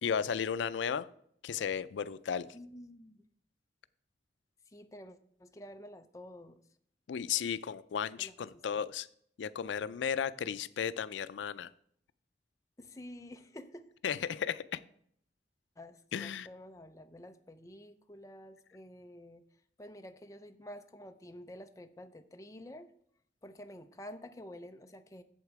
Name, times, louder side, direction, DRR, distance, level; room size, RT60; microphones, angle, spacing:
voice 1, 0.0-1.1 1.4-2.6 7.1-9.1 9.4-11.7 14.0-14.8 16.1-16.5, left 7 dB, 90° left, 15 dB, 0.4 m, -34 dB
voice 2, 2.5-3.2 4.7-6.6 8.2-8.6 12.8-13.9 15.8-19.4 19.8-22.9 23.4-25.2, left 1 dB, 20° left, 7 dB, 0.5 m, -50 dB
8.2 x 7.4 x 4.7 m, 0.64 s
head